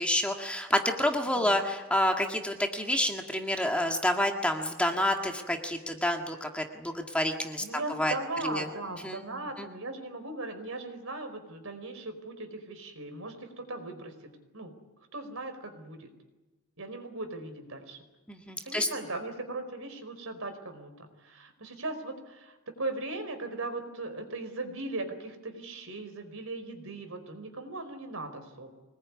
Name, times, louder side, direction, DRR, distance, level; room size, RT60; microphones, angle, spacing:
voice 1, 0.0-7.6 7.9-8.1 8.4-8.6 9.0-9.2 9.6-9.7 18.3-18.9, left 1 dB, 5° left, 3 dB, 1.8 m, -28 dB
voice 2, 7.6-14.7 15.1-16.1 16.8-18.0 18.6-28.7, right 2 dB, 65° right, 7 dB, 4.7 m, -38 dB
25.0 x 20.0 x 9.6 m, 1.1 s
head